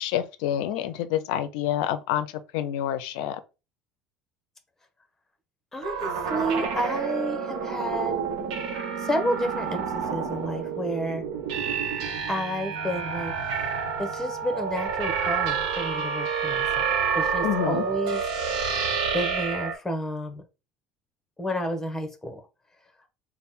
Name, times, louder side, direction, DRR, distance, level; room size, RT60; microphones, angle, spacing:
voice 1, 0.0-2.3 2.5-3.4 17.4-17.8, left 11 dB, 70° left, 0.5 m, -27 dB
voice 2, 5.7-8.2 9.0-11.2 12.3-13.4 14.0-18.2 19.1-20.4 21.4-22.4, equal, 10° left, 1.0 m, -30 dB
sound 1, 5.8-19.7, right 6 dB, 70° right, 0.9 m, -29 dB
3.5 x 2.2 x 4.1 m
hypercardioid pair, 70°, 4 cm